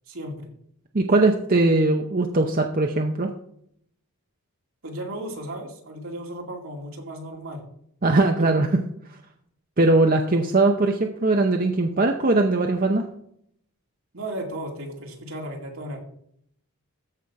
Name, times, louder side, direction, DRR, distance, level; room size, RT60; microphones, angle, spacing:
voice 1, 0.1-0.5 4.8-7.7 8.4-8.5 14.1-16.0, right 1 dB, 70° right, 0 dB, 2.3 m, -35 dB
voice 2, 0.9-3.3 8.0-8.7 9.8-13.1, right 2 dB, 40° right, 3 dB, 0.7 m, -20 dB
14.0 x 5.6 x 4.7 m, 0.69 s
head